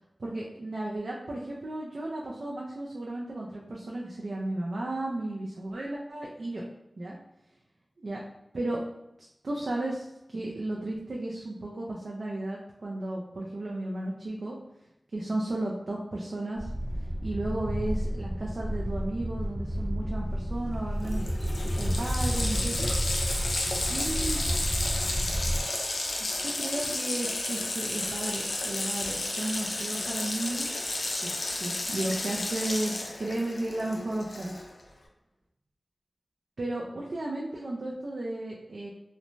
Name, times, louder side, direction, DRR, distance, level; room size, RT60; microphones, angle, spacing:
voice 1, 0.2-6.6 7.0-7.2 8.0-8.2 8.5-8.8 9.2-14.6 15.1-16.7 17.2-21.2 21.6-22.9 23.9-24.4 26.2-30.7 31.2-34.5 36.6-38.9, right 1 dB, 80° right, -3 dB, 0.4 m, -34 dB
sound 1, 16.6-25.6, equal, 60° right, 0.8 m, -31 dB
Water tap faucet, 20.7-20.8 21.0-34.8, left 2 dB, 85° left, 0.4 m, -32 dB
3.0 x 2.1 x 2.5 m, 0.87 s
wide cardioid pair, 55°, 0 cm